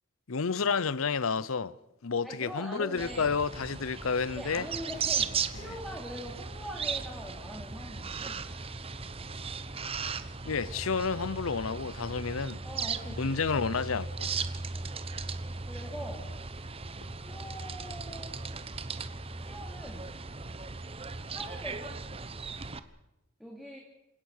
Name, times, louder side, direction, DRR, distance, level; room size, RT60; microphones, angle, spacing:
voice 1, 0.3-1.8 2.0-4.7 5.5-5.8 10.4-12.6 13.2-14.3, left 5 dB, 80° left, 0.7 m, -30 dB
voice 2, 2.2-3.3 4.3-8.5 12.6-13.6 14.7-14.9 15.7-16.3 17.2-18.4 19.4-20.2 21.3-22.0 23.4-23.8, equal, ahead, 2.8 m, -43 dB
sound 1, 3.0-22.8, right 5 dB, 25° right, 1.0 m, -37 dB
27.5 x 17.5 x 6.6 m
head